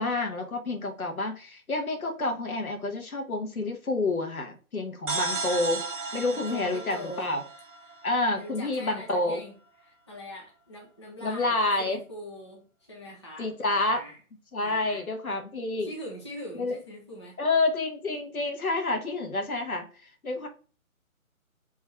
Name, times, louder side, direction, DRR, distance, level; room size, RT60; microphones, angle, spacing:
voice 1, 0.0-5.8 6.1-7.4 8.0-9.4 11.2-12.0 13.4-14.0 14.5-15.9 16.6-16.7 17.4-19.8 20.2-20.5, left 2 dB, 80° left, 1.4 m, -28 dB
sound 1, 5.1-8.7, right 3 dB, 60° right, 1.4 m, -34 dB
voice 2, 6.3-7.3 8.4-14.2 14.6-15.1 15.8-17.4, equal, 20° left, 0.5 m, -42 dB
3.7 x 3.1 x 4.5 m
figure-of-eight pair, 150°, 43 cm